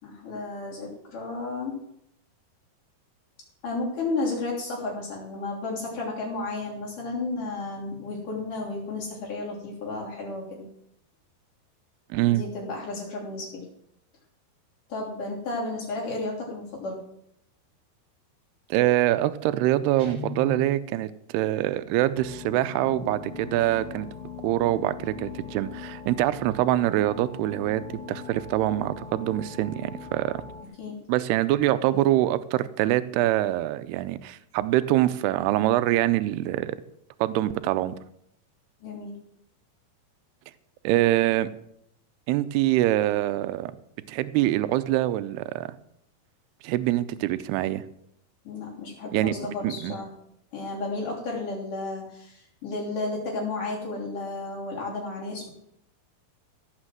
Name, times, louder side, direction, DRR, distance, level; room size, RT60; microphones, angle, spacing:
voice 1, 0.0-1.8 3.6-10.7 12.3-13.6 14.9-17.0 30.8-31.0 38.8-39.1 48.4-50.1 50.5-55.5, left 3 dB, 55° left, -4 dB, 4.6 m, -33 dB
voice 2, 12.1-12.4 18.7-24.1 24.4-30.4 31.1-36.8 37.2-38.0 40.8-41.5 42.3-43.7 44.1-45.7 46.6-47.8 49.1-49.3 49.6-49.9, right 15 dB, 85° right, 13 dB, 2.6 m, -24 dB
Guitar, 20.0-20.8, left 6 dB, 35° right, 1.8 m, -37 dB
sound 1, 22.1-30.6, left 6 dB, 70° left, 3.0 m, -41 dB
16.5 x 6.1 x 7.5 m, 0.74 s
omnidirectional pair, 4.7 m